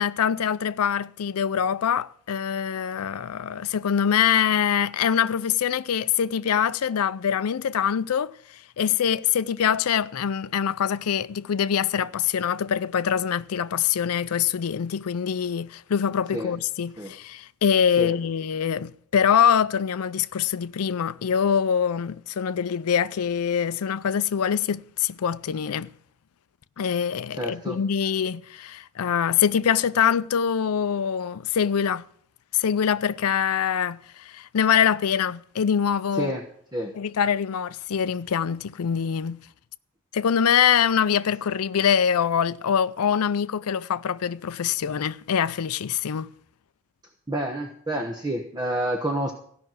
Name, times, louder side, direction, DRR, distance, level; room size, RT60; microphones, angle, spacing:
voice 1, 0.0-8.3 8.8-25.9 26.8-32.0 32.5-36.4 36.9-39.4 40.1-46.3, left 8 dB, 90° left, 0.5 m, -24 dB
voice 2, 27.4-27.8 36.2-36.4 36.7-36.9 47.3-49.3, right 1 dB, 20° right, 1.1 m, -28 dB
15.5 x 5.9 x 9.2 m
head